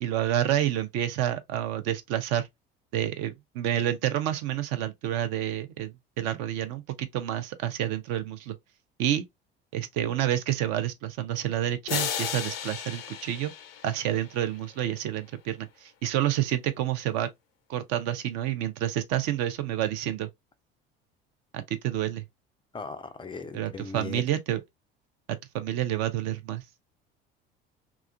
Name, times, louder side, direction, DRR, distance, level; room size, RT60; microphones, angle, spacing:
voice 1, 0.0-2.5 2.9-8.6 9.0-9.2 9.7-13.5 13.8-17.3 17.7-20.3 21.5-22.2 23.5-24.6 25.5-26.6, right 12 dB, 55° right, 0.6 m, -29 dB
sound 1, 11.9-14.6, left 9 dB, 75° left, 0.6 m, -34 dB
voice 2, 22.7-24.2, left 4 dB, 15° left, 0.3 m, -38 dB
2.8 x 2.3 x 2.2 m
figure-of-eight pair, 65°, 30 cm